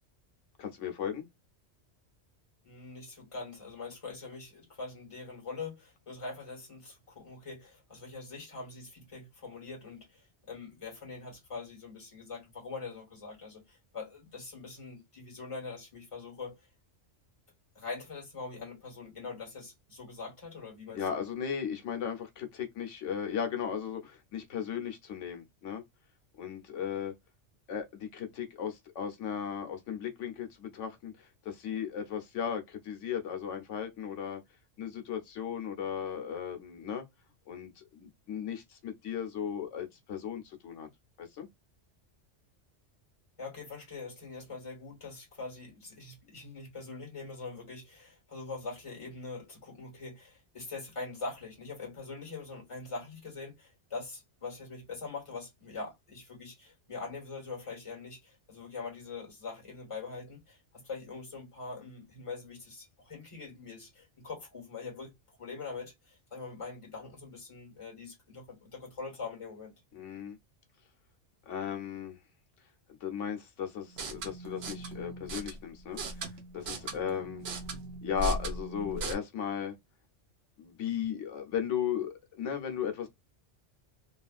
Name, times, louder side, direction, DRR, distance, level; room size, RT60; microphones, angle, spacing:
voice 1, 0.6-1.3 20.9-25.8 26.4-27.1 27.7-34.4 34.8-37.0 37.5-40.9 41.2-41.5 69.9-70.4 71.5-72.2 73.0-76.3 76.5-77.4 78.0-79.7 80.6-83.1, left 8 dB, 90° left, 1.2 m, -36 dB
voice 2, 2.6-16.7 17.7-21.2 43.4-65.1 65.4-69.7, left 4 dB, 25° left, 1.5 m, -43 dB
sound 1, 73.9-79.1, right 2 dB, 65° right, 1.0 m, -38 dB
3.3 x 2.4 x 2.4 m
omnidirectional pair, 1.2 m